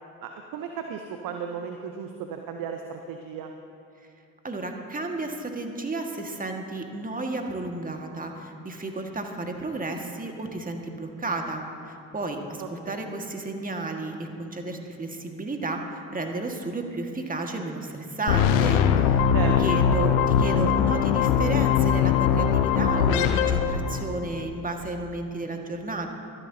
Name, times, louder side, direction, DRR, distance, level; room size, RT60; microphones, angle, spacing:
voice 1, 0.2-3.5 12.6-13.2 19.3-19.5, right 7 dB, 60° right, 5 dB, 0.9 m, -35 dB
voice 2, 4.4-19.2 19.6-26.1, right 2 dB, 20° right, 3 dB, 1.8 m, -32 dB
sound 1, 18.3-24.4, left 8 dB, 80° left, 0.7 m, -21 dB
24.5 x 11.0 x 2.8 m, 2.5 s
hypercardioid pair, 45°, 39 cm